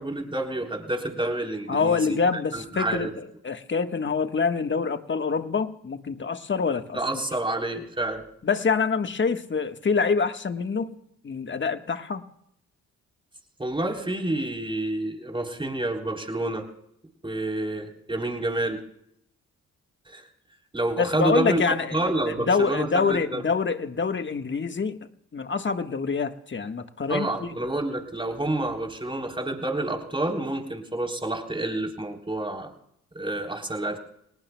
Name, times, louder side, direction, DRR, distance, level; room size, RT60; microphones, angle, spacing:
voice 1, 0.0-2.2 2.5-3.1 6.9-8.2 13.6-16.7 17.2-18.8 20.1-20.3 20.7-21.6 21.9-23.4 27.1-32.7 33.1-34.0, right 1 dB, 15° right, 2 dB, 3.7 m, -28 dB
voice 2, 1.7-7.0 8.4-10.9 11.2-12.2 21.0-22.0 22.3-25.0 25.3-27.5, left 5 dB, 35° left, 8 dB, 1.5 m, -26 dB
29.5 x 19.0 x 2.3 m, 0.75 s
supercardioid pair, 60°, 33 cm